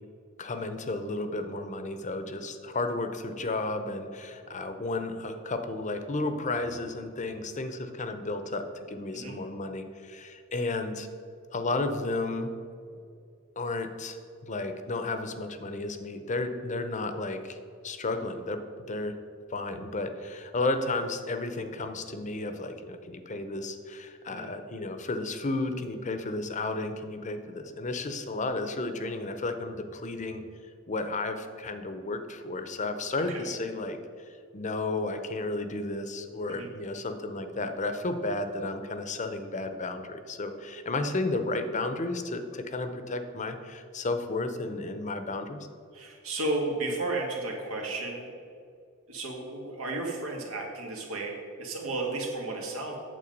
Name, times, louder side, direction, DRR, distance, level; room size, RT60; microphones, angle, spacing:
voice 1, 0.4-11.1 11.5-12.5 13.6-14.2 14.4-17.6 17.8-18.6 18.9-19.2 19.5-30.4 30.9-34.0 34.5-45.7, left 2 dB, 35° left, 8 dB, 0.7 m, -33 dB
voice 2, 45.9-48.3 49.1-53.0, right 2 dB, 90° right, 0 dB, 2.0 m, -33 dB
8.6 x 7.4 x 5.3 m, 2.4 s
head